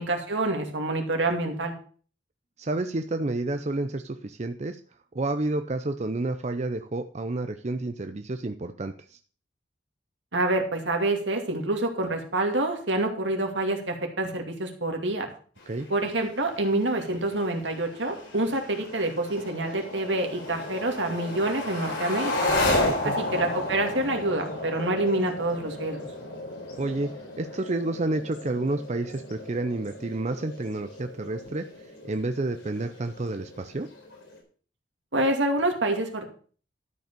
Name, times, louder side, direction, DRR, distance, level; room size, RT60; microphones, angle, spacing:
voice 1, 0.0-1.7 10.3-15.3 15.9-22.5 23.0-26.0 35.1-36.3, right 2 dB, 75° right, 3 dB, 2.4 m, -27 dB
voice 2, 2.6-4.8 5.1-9.2 15.7-15.9 22.9-23.1 26.8-27.1 27.4-31.7 32.0-33.9, right 2 dB, 40° right, 8 dB, 0.6 m, -30 dB
sound 1, 15.6-34.4, left 2 dB, 80° left, 4.2 m, -34 dB
12.5 x 5.3 x 6.7 m, 0.42 s
head